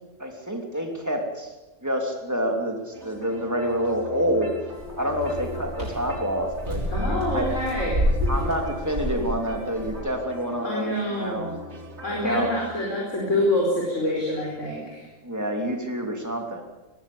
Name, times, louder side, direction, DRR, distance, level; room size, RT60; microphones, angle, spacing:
voice 1, 0.2-1.5 1.8-4.5 5.0-7.5 8.3-11.5 12.1-12.5 15.2-16.6, equal, 15° right, 3 dB, 3.2 m, -28 dB
sound 1, 2.9-12.7, left 1 dB, 55° right, 4.9 m, -39 dB
sound 2, 4.7-10.0, equal, 80° right, 8.1 m, -29 dB
voice 2, 6.9-8.0 10.6-11.5 12.0-15.1, left 1 dB, 70° left, -3 dB, 5.3 m, -26 dB
21.0 x 16.0 x 8.7 m, 1.1 s
omnidirectional pair, 1.3 m